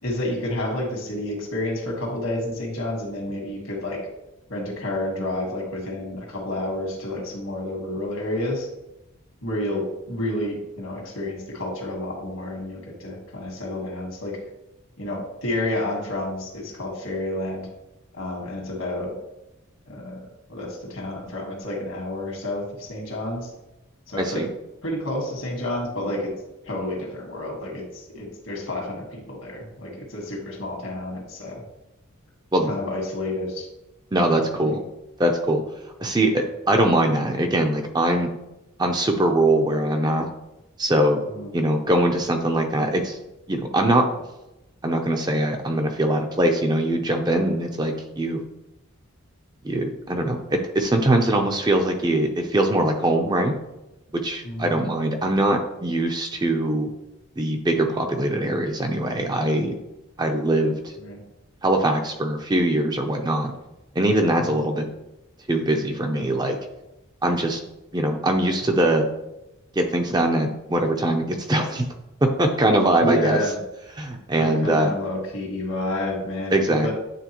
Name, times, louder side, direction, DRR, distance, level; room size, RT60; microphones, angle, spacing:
voice 1, 0.0-4.0 4.5-8.7 9.4-14.4 15.0-17.7 18.1-19.1 19.9-23.5 24.1-24.4 24.8-26.3 26.6-31.6 32.7-33.7 34.1-34.8 41.3-41.5 54.4-54.8 61.0-61.2 64.4-64.6 73.0-73.5 74.4-76.9, left 1 dB, 70° left, 0 dB, 1.7 m, -30 dB
voice 2, 24.2-24.5 32.5-32.7 34.1-34.8 35.2-35.6 36.0-38.3 38.8-40.3 40.8-41.2 41.5-43.2 43.5-44.1 44.8-48.4 49.6-53.5 54.1-56.9 57.4-59.7 60.2-60.7 61.6-63.5 63.9-64.9 65.5-66.6 67.2-67.6 67.9-69.1 69.8-71.9 72.2-73.4 74.0-74.9 76.5-76.9, right 1 dB, 20° right, 4 dB, 0.5 m, -22 dB
9.2 x 3.7 x 3.0 m, 0.93 s
head